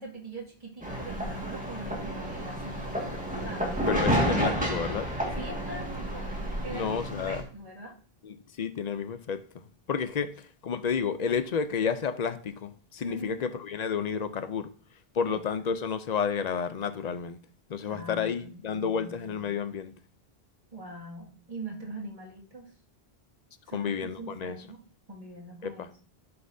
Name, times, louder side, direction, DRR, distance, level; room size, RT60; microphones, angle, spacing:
voice 1, 0.0-3.0 3.4-3.8 5.3-6.3 6.6-7.9 13.0-13.5 15.3-15.4 17.9-19.2 20.7-22.7 23.7-24.8 25.1-25.9, right 2 dB, 35° right, 2.1 m, -42 dB
sound 1, 0.8-7.4, equal, 10° right, 1.7 m, -30 dB
voice 2, 3.9-5.1 6.7-7.4 8.2-9.6 9.9-14.7 15.1-17.4 17.7-19.9 23.7-24.6 25.6-25.9, left 6 dB, 50° left, 0.6 m, -31 dB
11.0 x 5.6 x 2.7 m
omnidirectional pair, 1.0 m